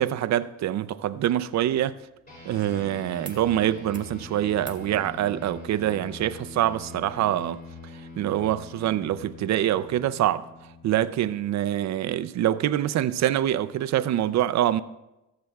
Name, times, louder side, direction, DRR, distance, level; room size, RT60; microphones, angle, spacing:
voice 1, 0.0-2.0 2.5-7.6 8.2-10.4 10.8-14.8, right 12 dB, 65° right, 0.5 m, -25 dB
sound 1, 2.3-12.0, left 3 dB, 30° left, 3.1 m, -44 dB
sound 2, 3.2-3.4 3.7-4.1 4.6-4.9 6.2-6.3, right 3 dB, 15° right, 1.8 m, -49 dB
20.5 x 7.6 x 2.3 m
cardioid pair, 90°, 30 cm